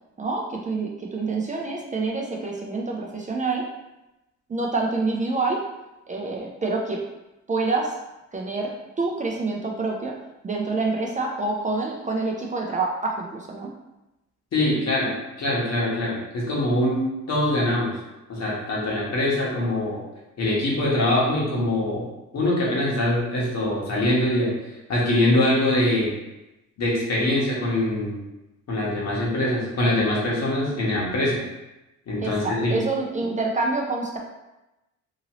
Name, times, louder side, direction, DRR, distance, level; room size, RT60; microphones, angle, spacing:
voice 1, 0.2-3.6 4.5-5.6 6.1-7.0 7.5-7.9 8.3-8.7 9.0-10.1 10.4-13.7 32.2-34.2, right 3 dB, 25° right, -1 dB, 0.4 m, -27 dB
voice 2, 14.5-15.1 15.4-18.0 18.3-20.0 20.4-22.1 22.3-24.5 24.9-26.1 26.8-28.2 28.7-31.4 32.1-32.8, left 1 dB, 60° left, -5 dB, 1.2 m, -23 dB
2.9 x 2.6 x 2.9 m, 0.97 s
cardioid pair, 90°, 30 cm